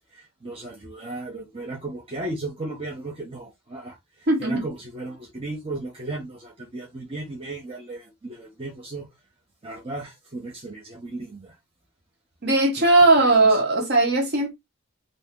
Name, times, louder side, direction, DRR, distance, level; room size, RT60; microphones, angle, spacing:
voice 1, 0.1-9.1 9.6-11.6 12.8-12.9 13.2-13.6, right 2 dB, 25° right, 0.7 m, -35 dB
voice 2, 4.3-4.6 12.4-14.5, right 2 dB, 50° right, 1.0 m, -18 dB
2.7 x 2.6 x 3.5 m
head